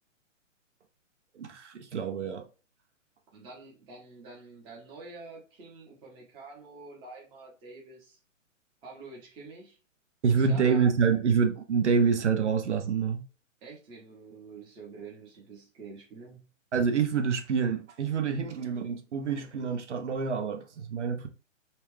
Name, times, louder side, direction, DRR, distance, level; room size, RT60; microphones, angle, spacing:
voice 1, 1.4-2.5 10.2-13.2 16.7-21.3, right 6 dB, 60° right, 0.9 m, -27 dB
voice 2, 3.3-8.2 8.8-9.8 10.2-10.9 13.6-16.5, right 3 dB, 15° right, 0.8 m, -47 dB
4.2 x 2.3 x 3.3 m
figure-of-eight pair, 135°, 39 cm